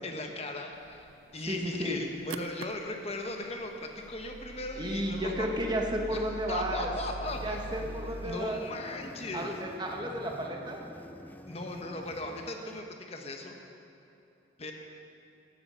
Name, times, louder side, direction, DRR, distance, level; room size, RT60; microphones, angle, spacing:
voice 1, 0.0-5.5 6.1-7.6 8.2-9.5 11.5-13.5 14.6-14.7, left 2 dB, 35° left, 3 dB, 1.2 m, -38 dB
sound 1, 0.7-8.4, right 3 dB, 90° right, 0.5 m, -44 dB
voice 2, 1.5-2.0 4.8-6.9 7.4-8.6 9.3-10.8, equal, 25° right, 1 dB, 1.4 m, -33 dB
sound 2, 7.2-12.8, left 1 dB, 10° left, 0.5 m, -48 dB
14.5 x 9.7 x 5.7 m, 2.9 s
head